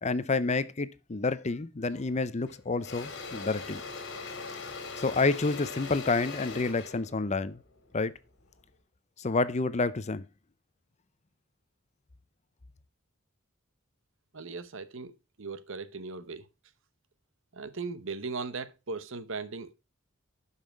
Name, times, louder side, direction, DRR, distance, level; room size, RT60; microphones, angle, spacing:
voice 1, 0.0-3.8 5.0-7.6 7.9-8.1 9.2-10.2, left 3 dB, 35° left, 0.6 m, -29 dB
Engine / Drill, 1.9-2.1 2.5-8.6, left 4 dB, 60° left, 2.3 m, -41 dB
voice 2, 14.3-15.1 15.4-16.4 17.5-19.7, right 4 dB, 65° right, 1.0 m, -38 dB
12.0 x 5.8 x 4.6 m
head